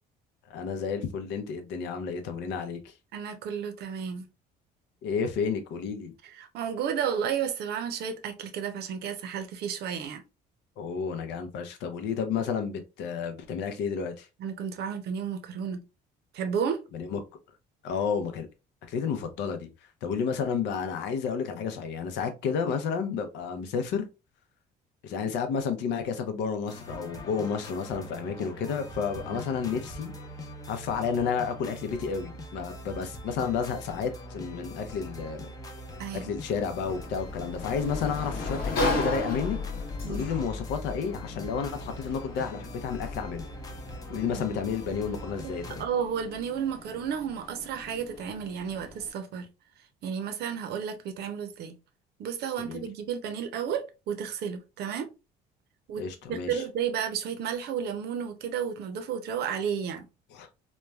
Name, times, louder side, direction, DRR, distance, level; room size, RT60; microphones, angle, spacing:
voice 1, 0.5-2.9 5.0-6.1 10.8-14.3 16.9-17.2 17.8-18.5 18.9-19.7 20.0-24.1 25.0-30.1 30.7-35.5 36.1-39.6 40.1-43.4 44.1-45.8 52.6-52.8 56.0-56.6 60.3-60.5, left 6 dB, 80° left, 0.6 m, -31 dB
voice 2, 3.1-4.3 6.2-10.2 14.4-15.8 16.3-16.8 29.3-29.4 36.0-36.3 40.0-40.3 44.2-44.5 45.4-45.5 45.8-49.5 50.0-51.7 52.2-55.1 55.9-56.0 56.3-60.0, right 7 dB, 65° right, 0.6 m, -32 dB
sound 1, 26.7-45.9, left 1 dB, 20° left, 0.5 m, -41 dB
Sliding door, 36.5-49.1, left 2 dB, 55° left, 0.9 m, -36 dB
3.1 x 2.2 x 2.3 m
cardioid pair, 110°, 18 cm